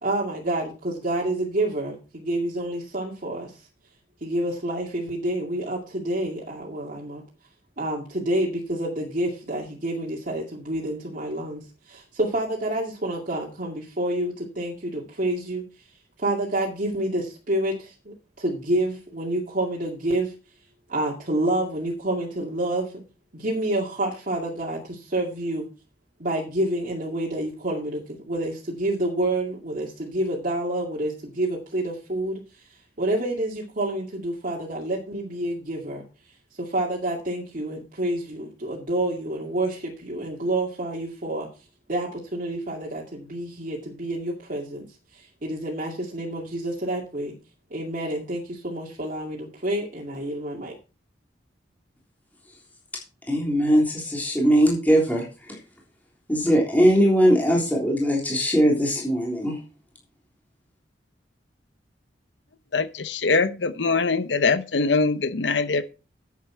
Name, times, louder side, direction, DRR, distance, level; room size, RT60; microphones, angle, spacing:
voice 1, 0.0-3.7 4.2-7.2 7.8-15.9 16.2-20.3 20.9-23.0 23.3-25.7 26.2-36.0 36.6-41.5 41.9-47.3 47.7-50.7, right 1 dB, 50° right, -3 dB, 2.3 m, -28 dB
voice 2, 53.3-55.6 56.3-59.6, equal, 10° left, -2 dB, 3.4 m, -20 dB
voice 3, 62.7-65.8, left 4 dB, 80° left, 12 dB, 0.8 m, -23 dB
9.9 x 8.6 x 4.5 m, 0.33 s
head